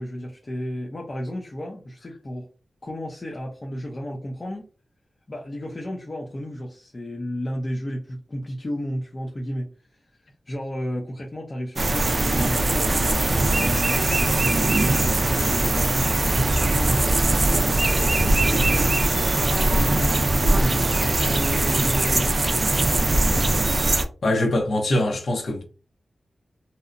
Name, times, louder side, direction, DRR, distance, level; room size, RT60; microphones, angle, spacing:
voice 1, 0.0-2.5 2.8-4.6 5.3-16.2 16.7-19.0 19.3-23.0, equal, 40° left, 0.5 m, -33 dB
sound 1, 11.8-24.0, right 2 dB, 45° right, 0.4 m, -21 dB
voice 2, 24.2-25.6, left 1 dB, 80° left, 0.8 m, -23 dB
2.7 x 2.0 x 2.4 m
wide cardioid pair, 70°, 0 cm